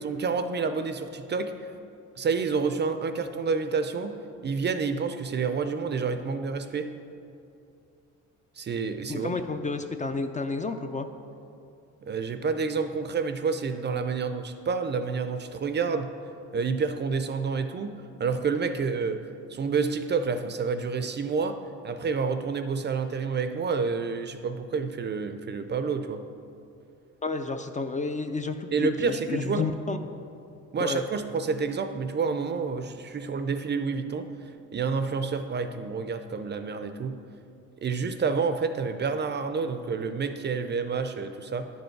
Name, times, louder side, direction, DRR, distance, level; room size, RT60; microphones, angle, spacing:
voice 1, 0.0-1.7 2.2-4.1 4.4-6.9 8.6-9.3 12.1-16.1 16.5-17.9 18.2-19.2 19.5-26.2 28.7-29.7 30.7-34.3 34.7-37.2 37.8-41.7, right 5 dB, 35° right, 9 dB, 0.5 m, -29 dB
voice 2, 9.1-11.1 27.2-30.0 30.8-31.0, left 4 dB, 25° left, 7 dB, 0.4 m, -31 dB
10.5 x 5.4 x 4.5 m, 2.6 s
cardioid pair, 90°, 30 cm